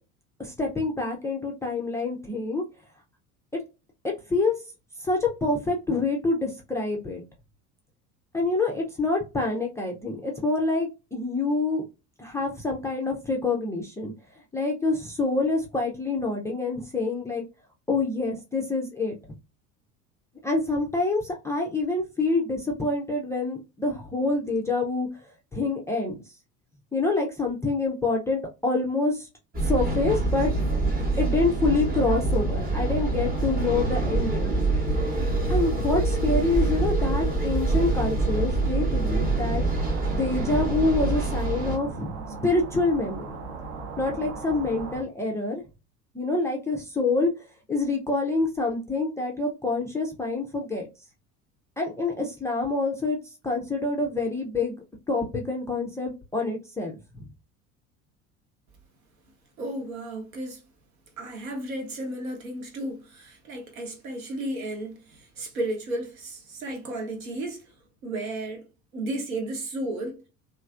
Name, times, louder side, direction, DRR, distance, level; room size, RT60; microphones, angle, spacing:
voice 1, 0.4-2.6 3.5-3.6 4.0-4.5 5.0-7.2 8.3-11.8 12.2-14.1 14.5-17.4 17.9-19.2 20.4-25.1 25.5-26.1 26.9-29.3 29.6-30.5 31.2-34.5 35.5-39.6 40.1-42.2 42.4-43.3 44.0-45.6 46.1-47.3 47.7-50.9 51.8-53.2 53.4-57.2, left 3 dB, 5° left, 0.3 m, -26 dB
sound 1, 29.5-41.8, right 2 dB, 20° right, 0.8 m, -25 dB
sound 2, 39.8-45.0, right 4 dB, 50° right, 0.7 m, -38 dB
voice 2, 59.6-60.6 61.2-67.6 68.0-68.7 68.9-70.2, right 1 dB, 70° right, 1.0 m, -33 dB
3.1 x 2.5 x 2.3 m
figure-of-eight pair, 70°, 43 cm